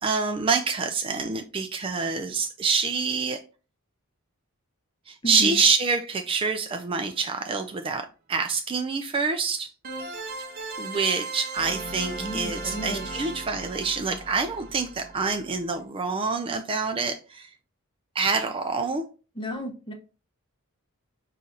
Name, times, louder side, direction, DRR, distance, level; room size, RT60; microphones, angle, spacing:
voice 1, 0.0-3.4 5.1-9.7 10.8-17.5 18.1-19.0, right 4 dB, 25° right, 5 dB, 0.3 m, -26 dB
voice 2, 5.2-5.6 12.1-13.1 19.4-19.9, equal, 20° left, 5 dB, 0.7 m, -33 dB
sound 1, 7.0-7.1 9.8-15.7, right 2 dB, 40° right, 0.8 m, -37 dB
5.5 x 2.5 x 3.8 m, 0.35 s
head